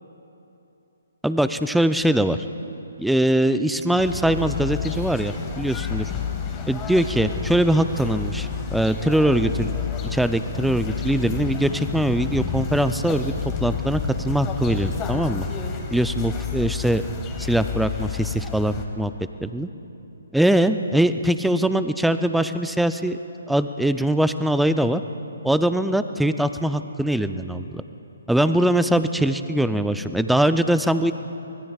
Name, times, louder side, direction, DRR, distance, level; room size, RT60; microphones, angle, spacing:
voice 1, 1.2-2.4 3.0-6.1 6.7-9.7 10.1-15.5 15.9-17.0 17.4-19.1 19.4-19.7 20.3-23.2 23.5-25.0 25.4-27.8 28.3-31.1, right 1 dB, ahead, 10 dB, 0.5 m, -22 dB
sound 1, 4.0-18.9, left 6 dB, 20° left, 1.7 m, -30 dB
24.5 x 20.0 x 2.4 m, 2.9 s
figure-of-eight pair, 140°, 0 cm